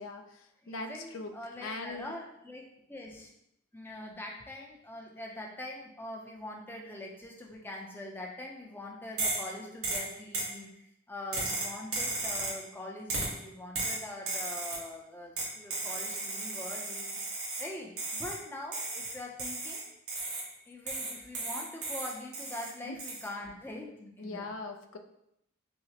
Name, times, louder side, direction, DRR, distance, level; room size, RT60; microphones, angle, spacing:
voice 1, 0.0-1.3 1.6-2.1 22.8-23.0 24.2-25.0, left 3 dB, 75° left, 6 dB, 0.4 m, -41 dB
voice 2, 0.6-2.6 2.9-3.3 3.7-17.2 17.6-19.9 20.7-24.5, left 1 dB, 10° left, -1 dB, 0.5 m, -43 dB
sound 1, 9.2-9.5 9.8-10.6 11.3-12.6 13.1-13.4 13.7-14.9 15.4-17.7 18.0-18.4 18.7-20.5 20.9-22.7 23.0-23.3, right 2 dB, 90° right, 1.1 m, -35 dB
5.6 x 2.0 x 2.8 m, 0.79 s
head